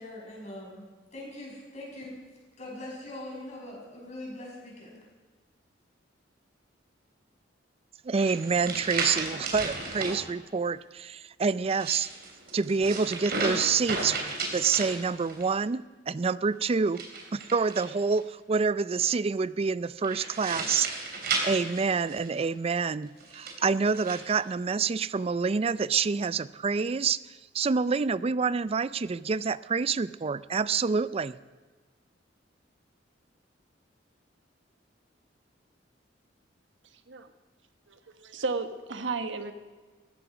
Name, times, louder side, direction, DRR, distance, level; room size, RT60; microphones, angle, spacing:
voice 1, 0.0-2.2 2.6-5.0, left 1 dB, 40° left, -3 dB, 6.7 m, -42 dB
voice 2, 8.0-12.1 12.5-17.0 17.3-20.9 21.4-31.4, right 5 dB, 35° right, 17 dB, 0.4 m, -27 dB
sound 1, 8.2-10.2 11.6-15.5 16.9-18.2 20.0-22.5 23.2-24.2, right 3 dB, 55° right, 3.6 m, -34 dB
voice 3, 37.9-39.5, right 4 dB, 90° right, 8 dB, 1.3 m, -33 dB
19.5 x 15.0 x 5.0 m, 1.3 s
head